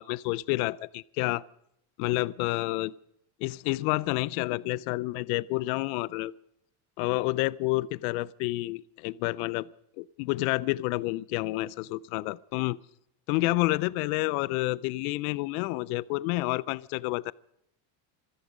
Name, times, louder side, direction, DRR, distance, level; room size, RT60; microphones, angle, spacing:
voice 1, 0.0-1.4 2.0-2.9 3.4-6.3 7.0-9.7 10.0-12.8 13.3-17.3, left 20 dB, 70° left, 21 dB, 0.5 m, -29 dB
26.0 x 11.0 x 5.1 m, 0.78 s
cardioid pair, 170°, 46 cm